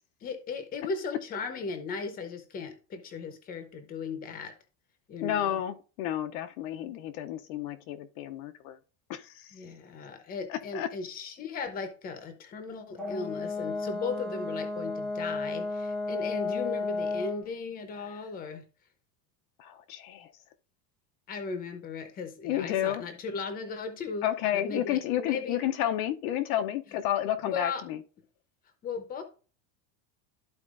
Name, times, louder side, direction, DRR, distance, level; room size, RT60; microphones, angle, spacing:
voice 1, 0.2-4.5 5.1-5.6 9.5-18.6 21.3-24.3 24.5-25.6 27.4-27.8 28.8-29.2, left 5 dB, 20° left, 0.8 m, -37 dB
voice 2, 5.2-8.8 9.1-9.5 10.5-10.9 19.6-20.3 22.4-23.0 24.2-28.0, left 11 dB, 60° left, 0.7 m, -31 dB
Brass instrument, 13.0-17.4, left 3 dB, ahead, 0.3 m, -33 dB
13.0 x 4.3 x 2.5 m
cardioid pair, 170°, 48 cm